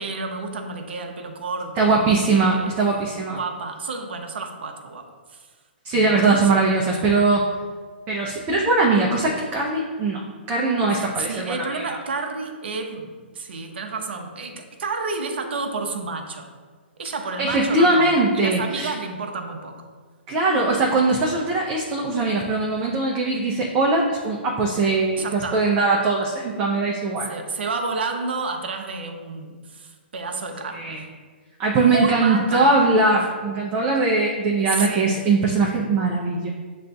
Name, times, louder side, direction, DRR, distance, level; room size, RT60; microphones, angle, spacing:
voice 1, 0.0-2.7 3.3-5.0 5.3-5.4 5.9-6.4 10.9-16.5 17.0-19.9 25.2-25.6 27.3-31.0 31.8-32.8 34.7-35.1, right 4 dB, 70° right, 4 dB, 0.6 m, -30 dB
voice 2, 1.8-3.4 5.8-7.5 8.1-10.2 10.5-12.0 17.4-18.9 20.3-27.3 30.7-31.0 31.6-36.5, right 3 dB, 25° right, -2 dB, 0.5 m, -21 dB
7.4 x 2.5 x 2.2 m, 1.5 s
hypercardioid pair, 130°, 6 cm